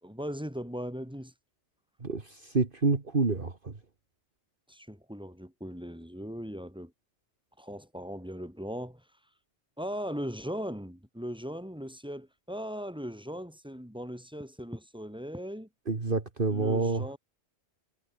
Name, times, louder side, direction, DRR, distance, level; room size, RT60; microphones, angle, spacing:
voice 1, 0.0-1.3 4.7-6.9 7.6-9.0 9.8-15.7 16.5-17.2, equal, 5° right, 6.9 m, -38 dB
voice 2, 2.0-3.7 15.9-17.1, right 3 dB, 50° right, 2.2 m, -28 dB
omnidirectional pair, 1.2 m